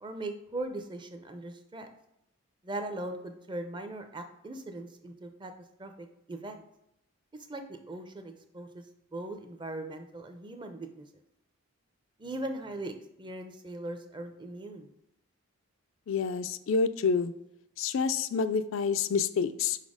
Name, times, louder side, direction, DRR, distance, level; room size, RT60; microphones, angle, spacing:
voice 1, 0.0-1.9 2.6-5.5 5.8-6.6 7.5-8.8 9.1-11.1 12.2-14.9, right 2 dB, 20° right, 6 dB, 0.5 m, -39 dB
voice 2, 16.1-17.3 17.8-19.8, left 5 dB, 65° left, 11 dB, 0.3 m, -28 dB
5.5 x 4.1 x 4.9 m, 0.82 s
head